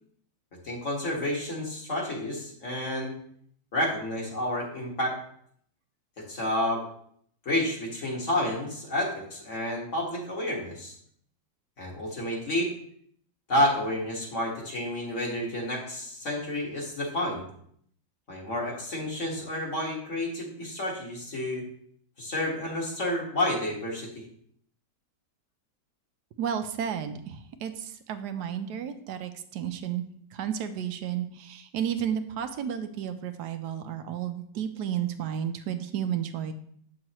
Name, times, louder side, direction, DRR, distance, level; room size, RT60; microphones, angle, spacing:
voice 1, 0.6-3.1 3.7-5.2 6.2-6.8 7.5-10.9 11.8-12.7 13.5-17.5 18.3-21.6 22.2-24.2, left 1 dB, 45° left, -2 dB, 1.9 m, -30 dB
voice 2, 26.4-30.0 30.3-36.5, right 9 dB, 80° right, 8 dB, 1.2 m, -32 dB
7.6 x 6.4 x 2.9 m, 0.65 s
omnidirectional pair, 1.8 m